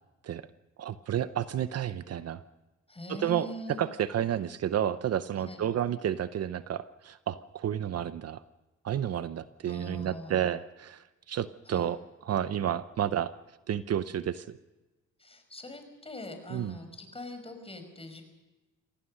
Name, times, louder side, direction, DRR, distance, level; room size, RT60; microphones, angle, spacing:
voice 1, 0.8-2.4 3.1-8.4 8.8-12.0 12.3-13.3 13.7-14.6 16.5-16.7, right 10 dB, 55° right, 13 dB, 0.8 m, -31 dB
voice 2, 2.9-3.8 5.4-5.6 9.7-10.5 11.7-11.9 15.2-18.2, left 2 dB, 20° left, 7 dB, 5.5 m, -43 dB
25.5 x 17.0 x 6.5 m, 1.1 s
cardioid pair, 90°, 30 cm